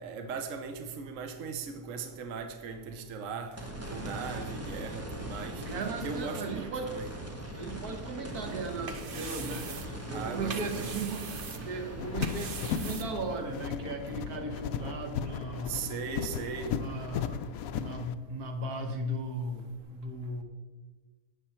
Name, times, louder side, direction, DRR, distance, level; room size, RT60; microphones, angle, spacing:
voice 1, 0.0-3.5 3.9-5.5 6.0-7.1 10.1-10.9 15.7-16.7, right 5 dB, 65° right, 6 dB, 1.2 m, -38 dB
sound 1, 3.6-15.9 16.4-16.5 19.8-19.9, right 1 dB, 10° right, 1.1 m, -41 dB
voice 2, 5.5-6.9 7.5-11.2 11.6-15.8 16.7-17.4 17.8-20.4, right 2 dB, 85° right, 5 dB, 1.7 m, -37 dB
sound 2, 8.5-13.6, right 6 dB, 45° right, 0.8 m, -43 dB
sound 3, 12.0-18.1, left 8 dB, 75° left, 1.0 m, -36 dB
11.5 x 8.7 x 4.4 m, 1.4 s
omnidirectional pair, 1.6 m